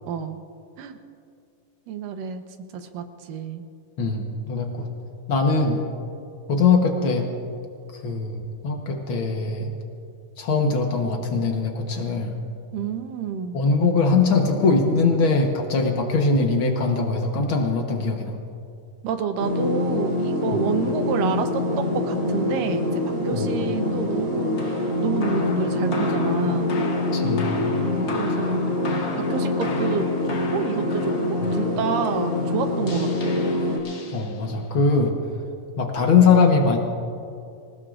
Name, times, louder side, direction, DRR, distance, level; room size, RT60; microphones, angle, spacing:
voice 1, 0.1-0.4 0.8-1.0 1.9-2.4 2.7-3.6 12.7-13.6 19.0-26.8 27.8-28.6 29.2-31.1 31.5-33.4, right 7 dB, 75° right, 7 dB, 2.6 m, -29 dB
voice 2, 4.0-4.9 5.3-5.8 6.5-7.3 7.9-9.7 10.4-12.4 13.5-18.3 23.3-23.5 27.1-27.7 31.4-31.5 34.1-35.1 35.8-36.8, left 4 dB, 75° left, 2 dB, 1.1 m, -21 dB
sound 1, 19.4-33.8, left 2 dB, 30° right, 3.4 m, -25 dB
sound 2, 24.5-34.7, left 3 dB, 55° left, 1.3 m, -38 dB
26.0 x 18.0 x 2.5 m, 2.5 s
omnidirectional pair, 4.0 m